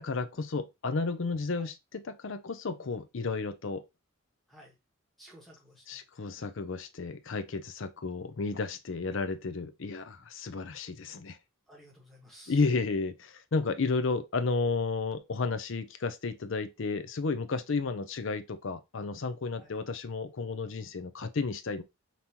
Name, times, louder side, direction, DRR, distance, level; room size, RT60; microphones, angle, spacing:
voice 1, 0.0-3.8 5.9-11.4 12.5-21.8, left 4 dB, 60° left, 0.5 m, -32 dB
voice 2, 5.2-6.0 11.7-12.6 19.6-19.7, equal, ahead, 1.4 m, -54 dB
5.3 x 2.9 x 2.9 m
head